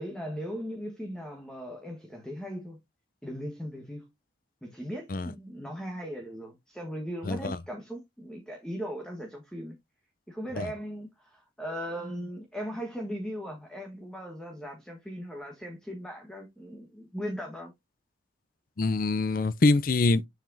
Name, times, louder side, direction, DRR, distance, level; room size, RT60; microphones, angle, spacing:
voice 1, 0.0-2.8 3.2-4.1 4.6-9.7 10.3-17.7, equal, 5° left, 1.3 m, -38 dB
voice 2, 7.3-7.6 10.6-10.7 18.8-20.2, left 3 dB, 45° left, 0.5 m, -24 dB
7.4 x 5.8 x 2.7 m
head